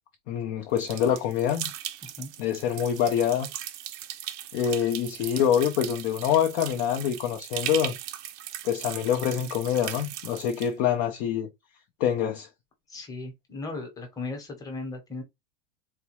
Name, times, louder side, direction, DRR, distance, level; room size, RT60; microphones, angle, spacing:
voice 1, 0.3-1.7 2.4-3.5 4.5-8.0 8.6-11.5 12.0-12.5, left 9 dB, 30° left, 0.4 m, -25 dB
sound 1, 0.8-10.7, right 12 dB, 65° right, 0.6 m, -38 dB
voice 2, 12.9-15.2, left 3 dB, 10° left, 0.9 m, -37 dB
4.1 x 2.3 x 2.9 m
supercardioid pair, 160°, 38 cm